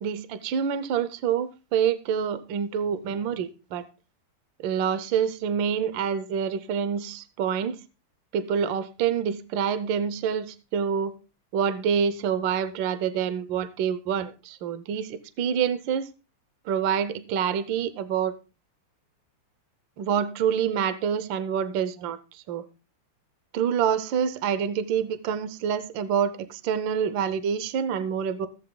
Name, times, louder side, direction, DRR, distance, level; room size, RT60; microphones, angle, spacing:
voice 1, 0.0-3.8 4.6-7.8 8.3-11.1 11.5-16.1 16.7-18.4 20.0-22.7 23.5-28.5, right 7 dB, 70° right, 1.4 m, -27 dB
15.0 x 7.4 x 3.8 m
omnidirectional pair, 2.3 m